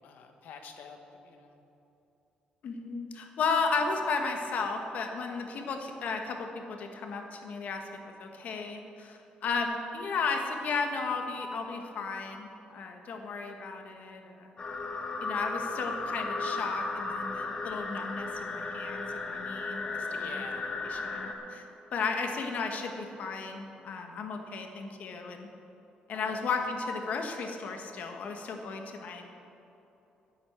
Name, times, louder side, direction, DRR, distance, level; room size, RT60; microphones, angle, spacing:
voice 1, 0.0-1.6 20.1-20.8 26.1-26.4, left 6 dB, 80° left, 4 dB, 1.3 m, -48 dB
voice 2, 2.6-7.9 8.2-14.5 15.2-20.4 20.9-21.6 21.9-25.5 26.1-29.2, left 4 dB, 60° left, 4 dB, 1.4 m, -34 dB
sound 1, 14.6-21.3, left 3 dB, 30° left, 1.3 m, -35 dB
10.0 x 9.6 x 7.4 m, 2.9 s
cardioid pair, 130°, 3 cm